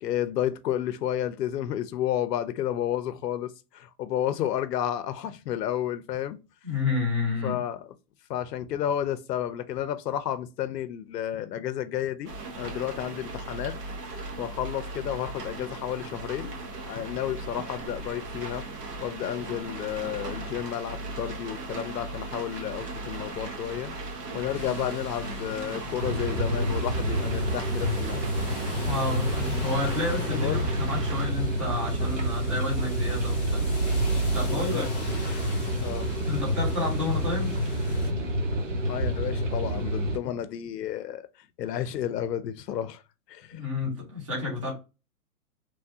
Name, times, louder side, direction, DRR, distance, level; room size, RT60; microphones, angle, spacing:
voice 1, 0.0-6.4 7.4-7.9 8.3-12.3 12.6-13.8 14.1-18.7 19.0-23.9 24.3-28.2 30.3-30.6 34.5-35.2 35.8-36.2 38.9-41.2 41.6-43.0 43.3-43.6, left 11 dB, 85° left, 0.6 m, -31 dB
voice 2, 6.6-7.6 28.8-33.6 34.3-34.9 36.3-37.5 43.5-44.7, left 3 dB, 20° right, 0.9 m, -30 dB
sound 1, 12.2-31.3, right 2 dB, 80° right, 1.1 m, -38 dB
sound 2, 24.5-38.1, right 2 dB, 10° left, 1.0 m, -34 dB
sound 3, 26.0-40.2, equal, 50° right, 0.8 m, -29 dB
3.1 x 2.3 x 2.6 m
hypercardioid pair, 175°, 47 cm